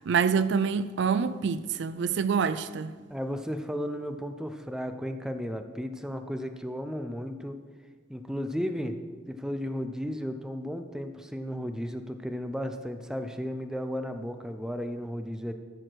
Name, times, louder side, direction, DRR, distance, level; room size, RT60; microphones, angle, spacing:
voice 1, 0.0-2.9, right 6 dB, 65° right, 0.4 m, -26 dB
voice 2, 3.1-7.6 8.1-9.0 9.3-15.5, equal, 5° right, 0.5 m, -34 dB
13.5 x 4.9 x 6.1 m
head